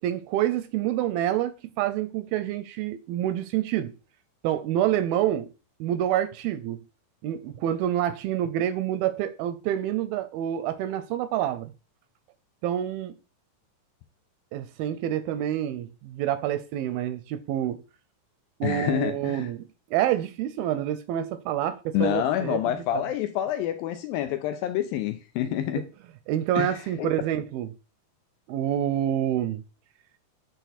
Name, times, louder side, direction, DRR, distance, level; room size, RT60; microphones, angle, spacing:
voice 1, 0.0-3.9 4.4-5.5 5.8-6.8 7.2-11.7 12.6-13.1 14.5-17.8 18.6-19.6 19.9-22.6 23.0-23.1 26.3-27.7 28.5-29.6, right 11 dB, 80° right, 2.2 m, -27 dB
voice 2, 18.6-19.5 21.9-25.9 26.6-27.1, left 11 dB, 85° left, 2.2 m, -28 dB
9.2 x 4.3 x 4.1 m
omnidirectional pair, 4.6 m